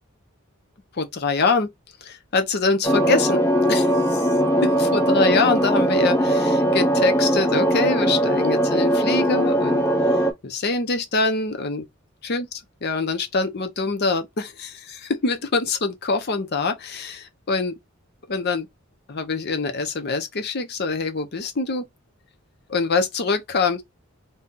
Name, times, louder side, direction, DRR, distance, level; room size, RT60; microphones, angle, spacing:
voice 1, 0.9-1.7 2.0-3.4 3.7-4.3 4.6-9.8 10.4-11.9 12.2-12.5 12.8-17.7 18.3-18.7 19.1-21.9 22.7-23.8, left 4 dB, 50° left, 0.7 m, -24 dB
sound 1, 2.8-10.3, right 1 dB, 10° left, 0.5 m, -20 dB
2.7 x 2.3 x 3.7 m
head